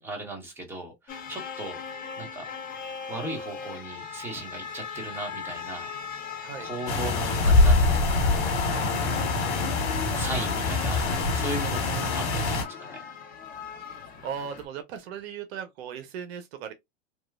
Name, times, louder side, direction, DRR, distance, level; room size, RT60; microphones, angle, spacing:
voice 1, 0.0-1.8 2.2-2.5 3.1-5.9 6.6-8.6 10.0-13.0, right 2 dB, 5° right, 1.1 m, -37 dB
sound 1, 1.1-14.7, left 6 dB, 25° left, 0.7 m, -38 dB
sound 2, 6.9-12.6, left 3 dB, 70° left, 1.2 m, -24 dB
voice 2, 13.8-16.7, right 8 dB, 60° right, 0.6 m, -38 dB
2.9 x 2.2 x 2.3 m
hypercardioid pair, 115°, 36 cm